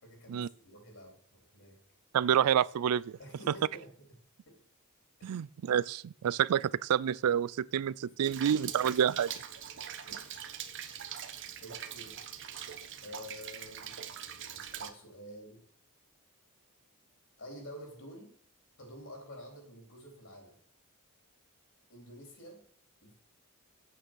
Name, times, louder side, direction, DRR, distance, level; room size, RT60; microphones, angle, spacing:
voice 1, 0.0-1.8 3.2-3.9 4.5-4.6 5.2-5.4 8.1-8.4 10.1-10.5 11.6-12.2 13.0-14.0 14.5-15.6 17.4-18.3 18.8-20.6 21.9-22.6 23.0-23.1, equal, 60° left, 4.1 m, -49 dB
voice 2, 2.1-3.2 5.2-9.3, right 9 dB, 80° right, 0.4 m, -28 dB
Rain, 8.2-14.9, right 9 dB, 55° right, 1.0 m, -43 dB
9.1 x 8.4 x 6.3 m
head